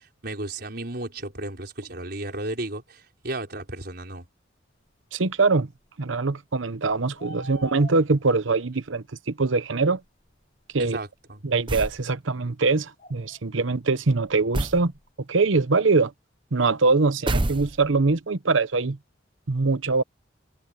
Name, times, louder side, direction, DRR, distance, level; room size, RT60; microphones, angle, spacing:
voice 1, 0.0-4.3 7.4-7.5 10.8-11.4, right 2 dB, 55° right, 5.2 m, -34 dB
voice 2, 5.1-5.7 6.0-10.0 10.7-11.0 11.4-14.9 15.3-16.1 16.5-19.0 19.5-20.0, right 3 dB, 80° right, 0.9 m, -23 dB
sound 1, 7.2-8.3 10.7-10.8 13.0-13.4 13.7-13.8 14.1-15.1, right 1 dB, 35° left, 3.2 m, -43 dB
sound 2, 11.7-12.0 14.5-14.9 17.3-18.0, right 1 dB, 25° right, 0.9 m, -27 dB
open air
head